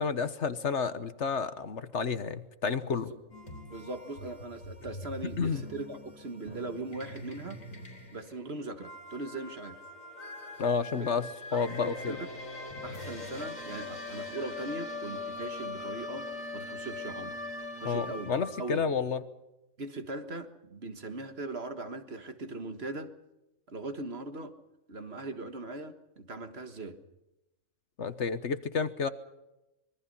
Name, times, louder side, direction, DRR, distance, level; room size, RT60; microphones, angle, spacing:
voice 1, 0.0-3.1 5.2-5.6 10.6-12.2 17.8-19.2 28.0-29.1, left 5 dB, 60° left, 12 dB, 1.4 m, -30 dB
voice 2, 2.9-3.2 3.7-7.6 8.1-9.8 11.0-11.1 11.5-12.2 12.8-16.3 16.5-17.4 17.8-18.3 18.6-18.8 19.8-23.1 23.7-24.5 24.9-27.0, right 2 dB, 50° right, 8 dB, 1.9 m, -40 dB
sound 1, 3.3-18.7, left 2 dB, 80° left, 4.7 m, -42 dB
26.0 x 22.0 x 5.5 m, 0.97 s
omnidirectional pair, 1.4 m